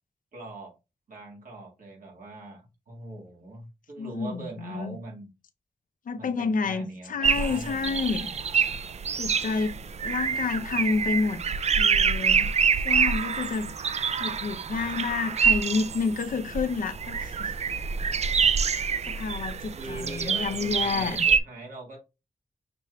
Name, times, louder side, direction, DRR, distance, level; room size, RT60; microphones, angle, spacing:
voice 1, 0.3-0.8 1.1-5.3 6.1-8.2 19.8-22.0, right 2 dB, 80° right, 1.6 m, -41 dB
voice 2, 4.0-5.0 6.1-8.3 9.2-9.8 10.0-11.4 11.8-12.5 12.8-13.7 14.2-17.5 18.5-18.8 19.1-21.3, left 4 dB, 75° left, 0.6 m, -29 dB
sound 1, 7.2-21.4, right 6 dB, 50° right, 0.4 m, -26 dB
5.9 x 3.2 x 2.2 m
cardioid pair, 40°, 14 cm